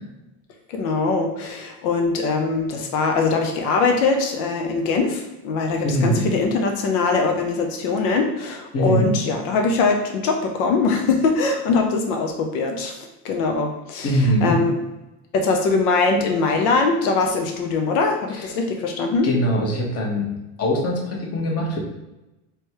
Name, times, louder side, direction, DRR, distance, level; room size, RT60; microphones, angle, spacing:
voice 1, 0.7-14.7 15.3-19.3, left 4 dB, 85° left, 3 dB, 0.8 m, -22 dB
voice 2, 5.8-6.2 8.7-9.1 14.0-14.6 18.3-18.5 19.2-20.3 20.6-21.8, equal, 35° left, -1 dB, 1.1 m, -22 dB
3.3 x 3.0 x 4.6 m, 0.99 s
cardioid pair, 135°, 44 cm